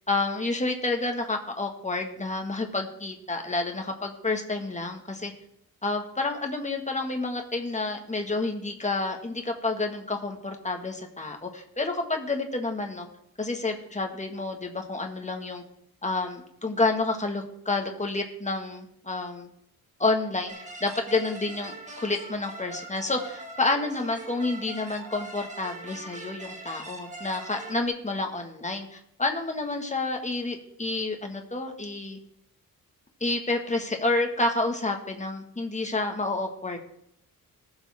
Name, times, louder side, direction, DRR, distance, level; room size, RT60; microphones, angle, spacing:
voice 1, 0.1-5.3 5.8-13.1 13.4-15.6 16.0-19.5 20.0-20.5 20.8-32.2 33.2-36.8, left 3 dB, 20° left, 3 dB, 1.8 m, -29 dB
sound 1, 20.5-27.9, right 3 dB, 20° right, 2.0 m, -42 dB
19.0 x 7.3 x 3.7 m, 0.74 s
wide cardioid pair, 120°, 36 cm